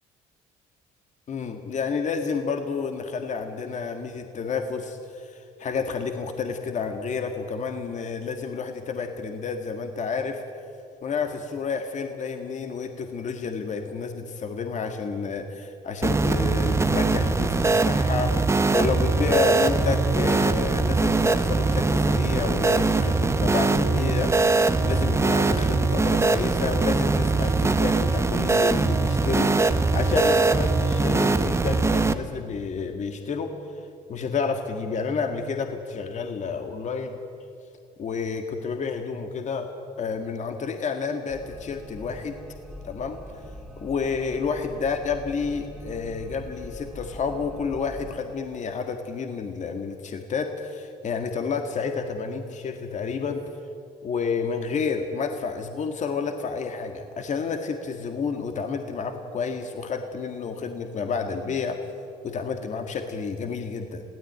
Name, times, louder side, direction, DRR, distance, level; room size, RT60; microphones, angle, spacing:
voice 1, 1.3-10.4 11.0-24.3 24.8-33.6 34.1-37.2 38.0-39.7 40.0-42.4 42.8-43.4 43.8-53.4 54.0-61.8 62.2-64.0, left 5 dB, 45° left, 5 dB, 1.8 m, -30 dB
sound 1, 16.0-32.1, right 3 dB, 15° right, 1.1 m, -22 dB
sound 2, 41.3-48.2, equal, ahead, 2.6 m, -42 dB
22.0 x 16.5 x 9.4 m, 2.5 s
cardioid pair, 110°, 17 cm